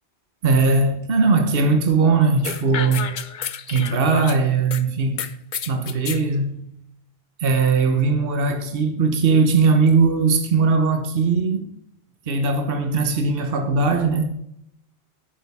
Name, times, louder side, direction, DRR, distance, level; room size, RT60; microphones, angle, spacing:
voice 1, 0.4-3.2 3.7-5.3 5.7-6.6 7.4-11.7 12.3-14.4, right 4 dB, 60° right, 1.3 m, -19 dB
sound 1, 2.4-4.8 5.2-6.2, left 8 dB, 50° left, 0.7 m, -31 dB
11.0 x 9.0 x 3.5 m
omnidirectional pair, 1.1 m